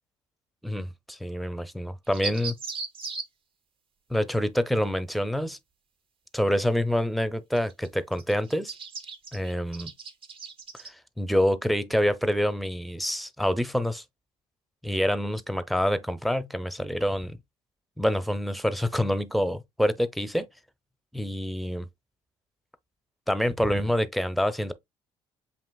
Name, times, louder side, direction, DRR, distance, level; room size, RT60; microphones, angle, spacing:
voice 1, 1.2-2.5 4.1-5.6 6.3-8.7 9.3-9.9 10.8-14.0 14.8-17.4 18.0-20.5 21.1-21.9 23.3-24.7, equal, ahead, 0.6 m, -26 dB
sound 1, 2.1-3.2 7.6-7.9 8.1-10.9, right 5 dB, 50° right, 1.5 m, -37 dB
7.3 x 2.9 x 2.2 m
supercardioid pair, 85°, 12 cm